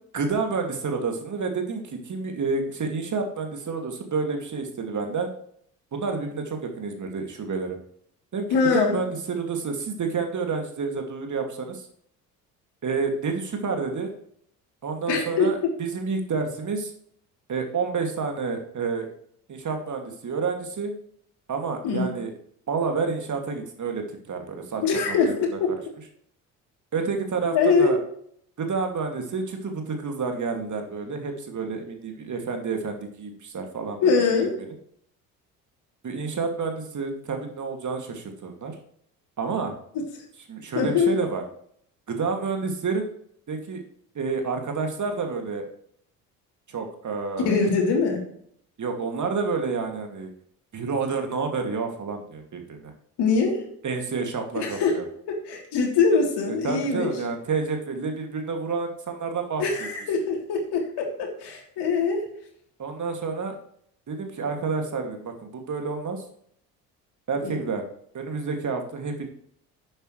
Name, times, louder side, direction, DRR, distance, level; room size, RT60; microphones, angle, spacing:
voice 1, 0.1-5.3 5.9-7.8 8.3-11.9 12.8-14.1 14.8-16.9 17.5-19.1 19.5-20.9 21.5-22.3 22.7-25.4 26.9-28.0 28.6-34.0 34.4-34.5 36.0-38.8 39.4-39.7 40.5-41.4 42.1-43.1 43.5-43.8 44.1-45.7 46.7-47.5 48.8-50.3 50.7-52.9 53.8-55.0 56.5-59.9 62.8-63.6 64.1-66.2 67.3-67.9 68.1-69.3, right 4 dB, 40° right, 4 dB, 2.5 m, -29 dB
voice 2, 8.5-9.0 15.1-15.5 21.8-22.1 24.8-25.7 27.5-27.9 34.0-34.5 40.7-41.1 47.4-48.2 53.2-53.6 54.6-55.0 55.3-57.1 59.6-62.2 67.4-67.6, left 5 dB, 55° left, 1 dB, 3.5 m, -23 dB
11.5 x 8.9 x 3.3 m, 0.65 s
hypercardioid pair, 55°, 47 cm